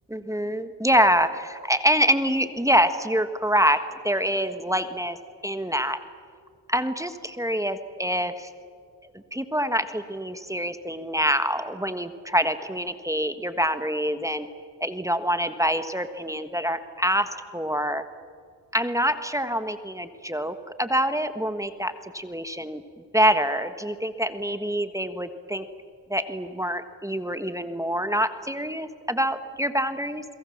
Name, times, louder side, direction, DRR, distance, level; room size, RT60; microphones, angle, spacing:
voice 1, 0.1-3.8 4.0-5.2 5.4-6.0 6.7-8.5 9.3-14.5 14.8-18.0 18.7-22.8 23.1-25.6 26.1-30.2, equal, 10° right, 10 dB, 1.5 m, -25 dB
29.5 x 22.0 x 7.3 m, 2.1 s
cardioid pair, 70°, 40 cm